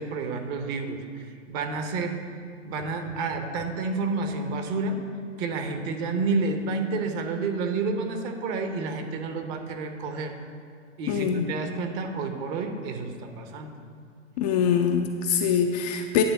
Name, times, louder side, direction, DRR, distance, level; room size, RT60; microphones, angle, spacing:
voice 1, 0.0-2.2 2.6-5.0 5.4-10.3 11.0-13.7, right 3 dB, 35° right, 6 dB, 0.9 m, -30 dB
voice 2, 11.1-11.5 14.4-16.2, left 7 dB, 35° left, 4 dB, 0.4 m, -24 dB
9.7 x 3.4 x 6.9 m, 2.2 s
figure-of-eight pair, 105°, 38 cm